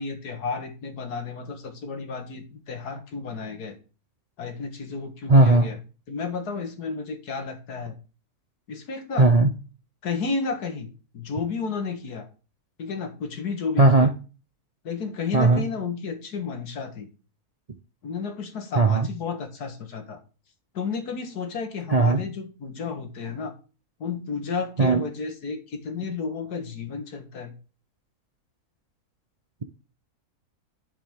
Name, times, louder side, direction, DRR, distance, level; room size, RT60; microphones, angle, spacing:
voice 1, 0.0-3.8 4.4-5.8 6.1-8.0 8.7-9.3 10.0-12.3 12.8-14.1 14.8-17.1 18.0-20.2 20.7-23.5 24.0-27.5, left 5 dB, 85° left, 2.1 m, -32 dB
voice 2, 5.3-5.7 9.2-9.5 13.8-14.1 15.3-15.7 18.7-19.1 21.9-22.2 24.8-25.0, right 2 dB, 40° right, 0.6 m, -17 dB
11.0 x 7.3 x 3.6 m
omnidirectional pair, 1.6 m